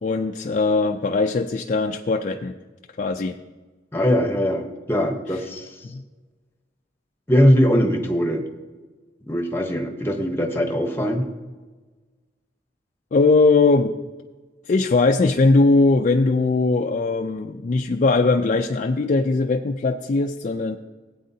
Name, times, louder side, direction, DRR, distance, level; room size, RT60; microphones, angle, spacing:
voice 1, 0.0-2.6 3.0-3.4 5.3-5.4 5.9-6.0 13.1-13.9 14.7-20.8, left 3 dB, 40° left, 4 dB, 0.4 m, -20 dB
voice 2, 3.9-5.7 7.3-8.4 9.3-11.3, equal, 10° left, 4 dB, 0.9 m, -21 dB
16.5 x 8.5 x 2.7 m, 1.3 s
head